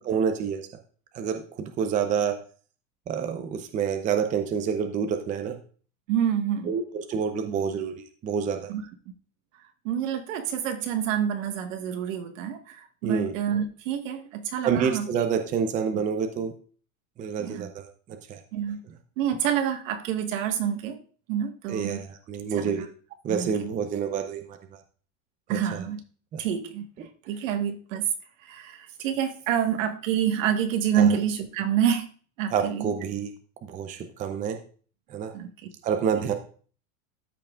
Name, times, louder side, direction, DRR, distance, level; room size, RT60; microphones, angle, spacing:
voice 1, 0.1-0.6 1.1-2.3 3.1-5.6 6.7-8.7 13.0-13.3 14.6-16.5 17.2-18.4 21.7-22.9 23.2-24.6 25.5-25.8 26.3-26.4 31.0-31.2 32.5-33.3 33.6-34.6 35.1-35.3 35.8-36.3, right 7 dB, 20° right, 6 dB, 0.6 m, -28 dB
voice 2, 6.1-6.7 8.7-8.8 9.8-15.1 17.4-17.7 18.5-18.8 19.2-21.0 21.3-22.0 22.5-22.8 23.3-23.7 25.5-26.0 26.4-26.9 27.3-28.1 28.4-32.1 32.4-32.9 35.3-35.5, right 9 dB, 75° right, 5 dB, 1.5 m, -27 dB
13.5 x 5.8 x 2.4 m, 0.42 s
supercardioid pair, 155°, 39 cm